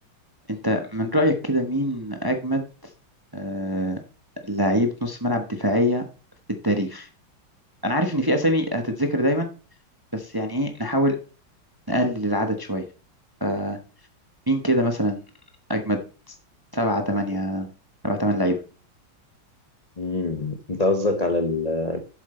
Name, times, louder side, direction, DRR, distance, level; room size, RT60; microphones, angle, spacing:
voice 1, 0.5-2.6 3.3-4.0 4.4-6.0 6.6-7.1 7.8-9.5 10.1-11.2 11.9-12.8 13.4-13.8 14.5-15.2 15.7-16.0 16.3-16.4 16.7-17.7 18.0-18.6, equal, 20° right, 5 dB, 0.6 m, -24 dB
voice 2, 20.0-22.0, left 2 dB, 55° left, 6 dB, 0.4 m, -24 dB
7.4 x 7.3 x 4.3 m, 0.35 s
omnidirectional pair, 2.1 m